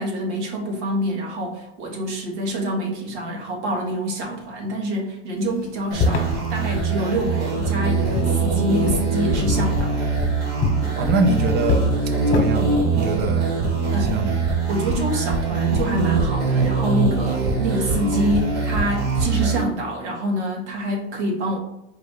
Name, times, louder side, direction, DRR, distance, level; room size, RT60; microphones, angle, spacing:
voice 1, 0.0-10.0 13.9-14.2 14.7-21.6, equal, 75° right, 0 dB, 1.5 m, -26 dB
sound 1, 5.4-7.3 7.9-9.2 9.4-12.4, left 4 dB, 35° left, 1.2 m, -26 dB
sound 2, 5.9-19.6, right 4 dB, 45° right, 1.5 m, -22 dB
voice 2, 10.9-11.8 12.3-13.5 14.0-14.3, right 3 dB, 30° right, 6 dB, 0.7 m, -23 dB
4.6 x 2.5 x 3.7 m, 0.90 s
hypercardioid pair, 110°, 35 cm